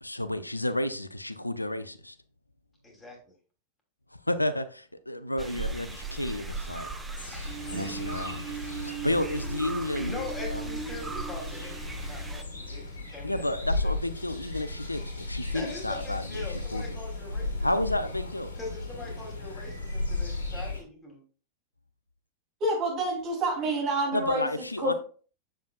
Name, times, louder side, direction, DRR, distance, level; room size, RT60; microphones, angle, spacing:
voice 1, 0.0-2.2 4.3-6.9 7.7-8.4 8.7-10.6 13.2-16.4 16.7-16.9 17.6-18.6 24.1-24.9, left 1 dB, 85° left, 0.4 m, -31 dB
voice 2, 2.8-3.2 10.0-13.9 15.5-18.0 18.6-21.2, left 3 dB, 15° left, 3.0 m, -42 dB
sound 1, 5.4-12.4, right 3 dB, 10° right, 1.0 m, -39 dB
sound 2, 7.2-20.8, left 2 dB, 70° left, 2.3 m, -35 dB
sound 3, 7.4-13.1, right 6 dB, 55° right, 3.2 m, -40 dB
voice 3, 22.6-24.5 24.8-24.9, right 2 dB, 35° right, 3.0 m, -27 dB
7.4 x 7.2 x 2.3 m
figure-of-eight pair, 90°, 0 cm